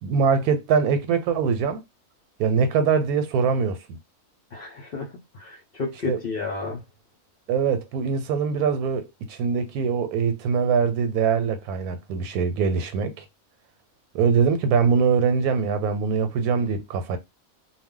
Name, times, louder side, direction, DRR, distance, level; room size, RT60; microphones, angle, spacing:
voice 1, 0.0-1.8 2.4-4.0 6.1-6.2 7.5-13.2 14.1-17.2, right 6 dB, 85° right, 1.1 m, -23 dB
voice 2, 4.5-6.8, left 4 dB, 55° left, 0.6 m, -32 dB
2.3 x 2.1 x 3.6 m
omnidirectional pair, 1.5 m